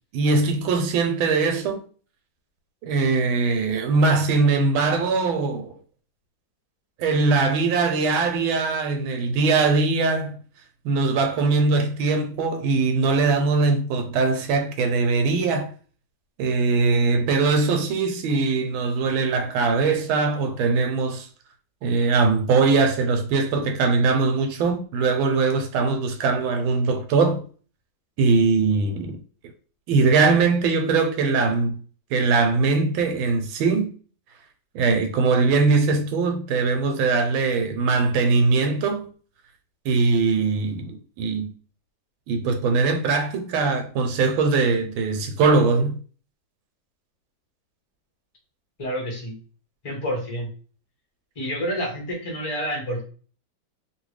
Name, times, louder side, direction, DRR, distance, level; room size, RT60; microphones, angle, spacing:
voice 1, 0.1-1.8 2.8-5.7 7.0-10.4 10.8-15.7 16.4-21.3 21.8-27.4 28.2-29.2 29.9-31.8 32.1-33.9 34.7-39.1 39.8-41.5 42.3-46.0, right 4 dB, 85° right, 1.4 m, -21 dB
voice 2, 48.8-49.4 49.8-50.5 51.4-53.0, equal, 55° left, 0.3 m, -28 dB
2.9 x 2.8 x 3.1 m
omnidirectional pair, 2.2 m